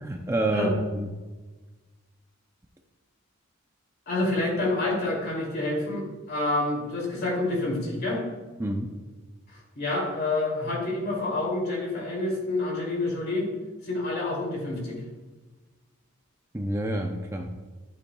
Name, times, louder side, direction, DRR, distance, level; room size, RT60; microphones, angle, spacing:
voice 1, 0.0-1.1 8.6-8.9 16.5-17.5, right 1 dB, 15° right, 2 dB, 0.5 m, -28 dB
voice 2, 4.1-8.2 9.5-13.5 13.8-15.0, left 2 dB, 50° left, -2 dB, 2.8 m, -28 dB
11.5 x 8.4 x 2.3 m, 1.3 s
head